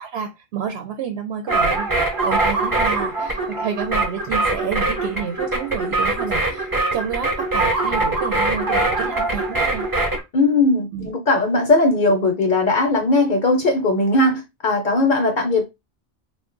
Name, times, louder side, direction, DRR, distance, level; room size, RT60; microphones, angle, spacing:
voice 1, 0.0-1.9 2.2-9.8 10.9-11.1, right 7 dB, 90° right, 0.8 m, -29 dB
sound 1, 1.5-10.2, right 2 dB, 25° right, 0.6 m, -22 dB
voice 2, 10.3-15.6, left 2 dB, 55° left, 0.7 m, -18 dB
2.4 x 2.1 x 3.7 m
omnidirectional pair, 1.0 m